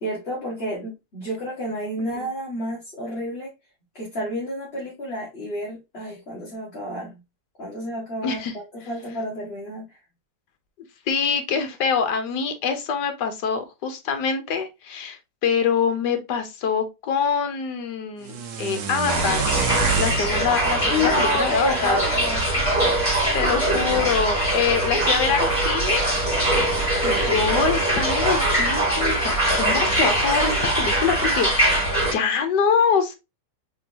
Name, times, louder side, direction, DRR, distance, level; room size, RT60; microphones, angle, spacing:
voice 1, 0.0-3.5 3.9-7.2 7.6-10.0 20.9-22.6 23.2-24.0 26.5-26.6 27.2-27.5, left 1 dB, 35° left, 1.7 m, -30 dB
voice 2, 8.2-8.5 11.1-19.4 20.0-22.0 23.3-26.1 27.0-31.5 32.1-33.2, left 6 dB, 70° left, 1.5 m, -25 dB
sound 1, 18.2-22.4, right 4 dB, 70° right, 1.5 m, -29 dB
sound 2, 19.1-32.1, right 1 dB, 15° left, 2.7 m, -22 dB
4.4 x 3.6 x 2.8 m
omnidirectional pair, 1.9 m